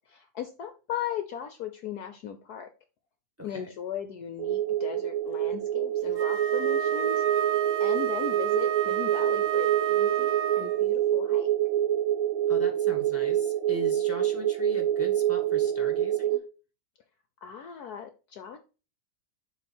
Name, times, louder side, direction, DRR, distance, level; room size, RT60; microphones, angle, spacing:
voice 1, 0.1-2.7 3.4-7.5 7.8-11.5 17.4-18.6, left 9 dB, 65° left, 8 dB, 1.0 m, -37 dB
voice 2, 3.4-3.7 12.5-16.4, left 1 dB, 10° right, 5 dB, 1.1 m, -39 dB
sound 1, 4.4-16.4, right 11 dB, 90° right, 1.5 m, -26 dB
Wind instrument woodwind instrument, 6.2-10.8, right 9 dB, 60° right, 0.9 m, -31 dB
7.3 x 3.5 x 6.0 m, 0.33 s
omnidirectional pair, 2.1 m